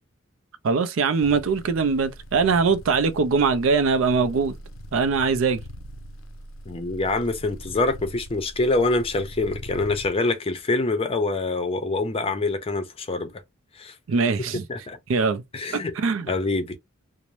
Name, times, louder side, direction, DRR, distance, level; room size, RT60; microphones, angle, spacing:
voice 1, 0.6-4.5 4.9-5.6 14.1-14.6 15.1-15.4 16.0-16.3, right 4 dB, 70° right, 0.4 m, -22 dB
sound 1, 1.2-10.1, equal, 90° left, 0.5 m, -41 dB
voice 2, 6.7-13.3 13.8-13.9 14.7-15.0 15.5-15.9 16.3-16.8, left 2 dB, 30° left, 0.5 m, -25 dB
2.6 x 2.0 x 3.0 m
head